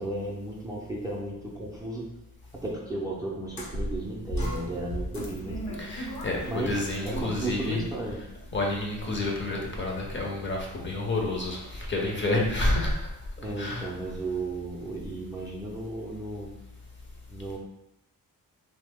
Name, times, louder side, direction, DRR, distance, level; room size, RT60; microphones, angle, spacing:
voice 1, 0.0-2.1 2.6-5.8 6.5-8.2 13.4-16.5 17.3-17.6, right 2 dB, 10° right, -5 dB, 0.4 m, -34 dB
sound 1, 3.5-8.7, equal, 80° left, 0.9 m, -36 dB
voice 2, 5.8-7.8 8.5-13.1 13.6-13.9, left 2 dB, 35° left, -2 dB, 0.6 m, -29 dB
3.0 x 2.1 x 3.4 m, 0.86 s
wide cardioid pair, 125°, 35 cm